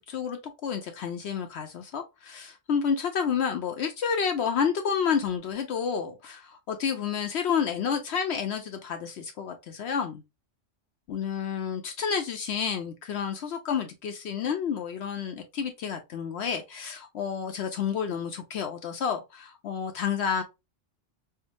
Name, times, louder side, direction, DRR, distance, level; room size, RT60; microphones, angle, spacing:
voice 1, 0.0-10.2 11.1-20.4, left 7 dB, 70° left, 0.8 m, -30 dB
4.6 x 2.2 x 2.6 m
omnidirectional pair, 1.3 m